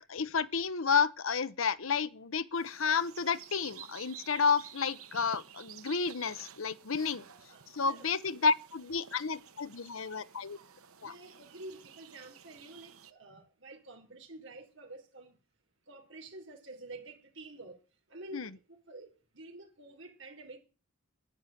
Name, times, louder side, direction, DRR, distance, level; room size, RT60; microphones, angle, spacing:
voice 1, 0.1-7.2 7.7-10.6 11.0-11.1 18.3-18.5, left 5 dB, 75° left, 0.9 m, -31 dB
sound 1, 2.6-13.1, right 8 dB, 90° right, 1.3 m, -52 dB
voice 2, 7.3-8.1 11.0-15.4 15.9-17.8 18.1-20.6, right 2 dB, 60° right, 3.9 m, -49 dB
11.0 x 10.0 x 9.1 m
head